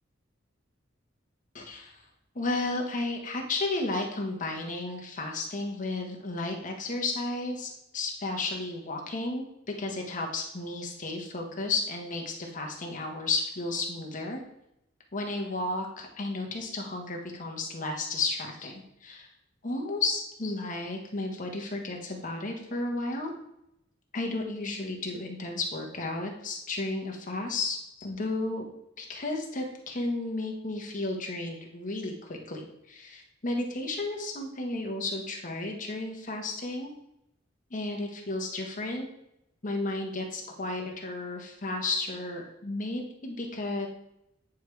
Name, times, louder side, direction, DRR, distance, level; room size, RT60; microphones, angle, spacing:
voice 1, 1.5-2.0 2.3-9.4 9.8-14.4 15.1-19.3 19.6-23.3 24.1-28.7 29.0-36.9 37.7-39.1 39.6-43.9, left 2 dB, 45° left, 2 dB, 1.1 m, -33 dB
8.9 x 4.7 x 3.3 m, 0.82 s
head